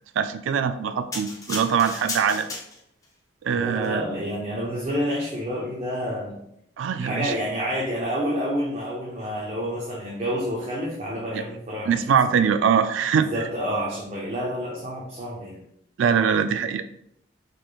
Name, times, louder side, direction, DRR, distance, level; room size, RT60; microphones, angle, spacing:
voice 1, 0.2-2.5 3.4-4.0 6.8-7.4 11.3-11.4 11.9-13.4 16.0-16.8, right 7 dB, 85° right, 10 dB, 0.3 m, -22 dB
sound 1, 1.1-3.1 3.7-3.9, left 2 dB, 15° left, 0.5 m, -34 dB
voice 2, 3.6-6.4 7.0-12.0 12.3-12.4 13.2-15.6, equal, 35° right, -4 dB, 0.6 m, -29 dB
4.2 x 3.2 x 2.4 m, 0.75 s
head